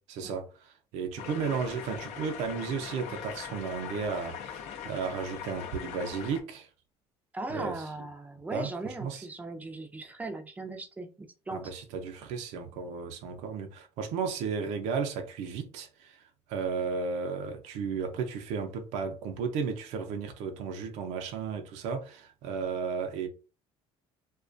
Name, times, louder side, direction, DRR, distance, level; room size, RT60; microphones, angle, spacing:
voice 1, 0.1-6.7 7.5-8.1 8.5-9.3 11.5-16.2 16.5-23.3, right 5 dB, 75° right, 0.5 m, -34 dB
sound 1, 1.2-6.4, left 8 dB, 70° left, 0.5 m, -41 dB
voice 2, 7.3-11.7, right 2 dB, 15° right, 0.4 m, -38 dB
2.3 x 2.2 x 2.5 m
cardioid pair, 125°, 12 cm